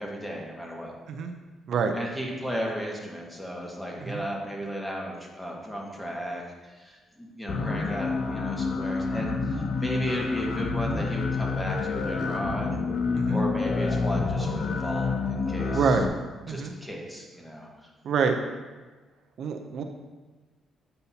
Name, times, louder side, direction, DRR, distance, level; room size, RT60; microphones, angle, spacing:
voice 1, 0.0-0.9 1.9-6.4 6.7-12.8 13.3-15.9 16.5-17.7, equal, 10° left, -1 dB, 1.4 m, -35 dB
sound 1, 7.5-16.1, left 4 dB, 50° left, 0.6 m, -28 dB
voice 2, 15.7-16.1 16.5-16.7 18.0-18.4 19.4-19.8, right 6 dB, 65° right, 5 dB, 0.5 m, -26 dB
8.0 x 5.5 x 2.8 m, 1.3 s
cardioid pair, 90°, 0 cm